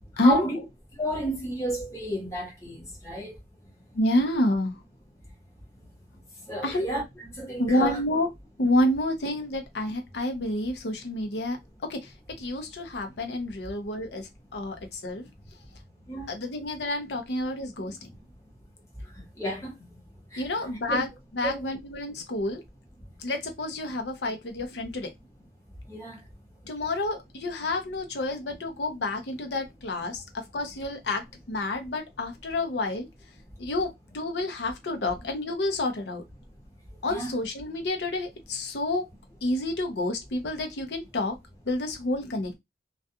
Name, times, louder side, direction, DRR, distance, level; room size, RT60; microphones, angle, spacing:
voice 1, 0.2-0.6 1.0-3.3 6.5-7.0 7.4-8.0 16.1-16.3 17.8-17.9 19.4-19.8 20.3-20.4 20.9-21.0 21.4-21.6 25.9-26.2 37.1-37.3, right 1 dB, 15° left, 1.0 m, -31 dB
voice 2, 3.9-4.8 6.6-6.9 7.6-8.3 8.6-11.6 11.9-12.1 12.4-15.2 16.3-18.1 20.4-22.6 23.2-25.1 26.7-33.1 33.6-36.2 37.0-39.1 39.4-41.4 41.7-42.5, left 1 dB, 80° left, 0.6 m, -29 dB
2.3 x 2.3 x 2.7 m
head